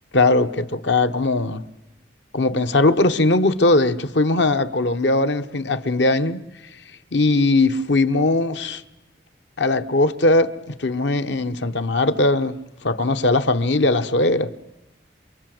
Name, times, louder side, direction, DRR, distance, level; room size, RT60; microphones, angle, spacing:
voice 1, 0.1-1.6 2.3-6.4 7.1-8.8 9.6-12.6 12.8-14.6, left 2 dB, 75° left, 1.1 m, -19 dB
28.5 x 23.5 x 7.8 m
head